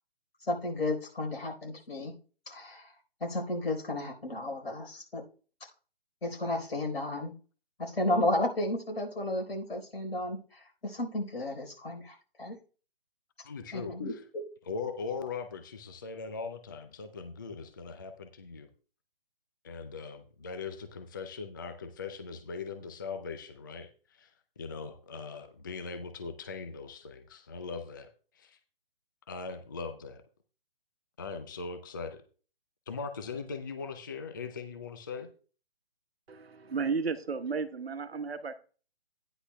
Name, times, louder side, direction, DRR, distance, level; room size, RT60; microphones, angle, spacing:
voice 1, 0.5-2.1 2.5-2.8 3.2-5.2 6.2-7.3 7.8-10.4 10.8-12.5 13.7-14.1, left 1 dB, 80° left, 1 dB, 4.0 m, -32 dB
voice 2, 13.4-14.3 14.6-18.7 19.6-28.1 28.3-28.6 29.3-30.2 31.2-32.2 32.9-35.3, left 5 dB, 20° left, 8 dB, 0.4 m, -40 dB
voice 3, 36.3-38.6, right 5 dB, 85° right, 10 dB, 1.1 m, -33 dB
12.5 x 9.9 x 2.2 m, 0.38 s
hypercardioid pair, 150°, 30 cm